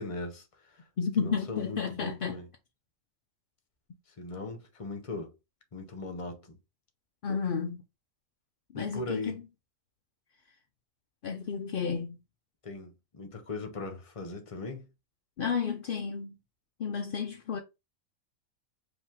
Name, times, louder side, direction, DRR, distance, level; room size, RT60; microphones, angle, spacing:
voice 1, 0.0-0.8 1.2-2.5 4.2-5.3 5.7-6.6 8.7-9.4 12.6-14.9, left 3 dB, 30° left, 0.7 m, -39 dB
voice 2, 1.0-2.4 7.2-7.8 8.7-9.4 11.2-12.2 15.4-16.4 16.8-17.6, left 6 dB, 65° left, 0.5 m, -32 dB
5.0 x 2.7 x 3.6 m
omnidirectional pair, 1.5 m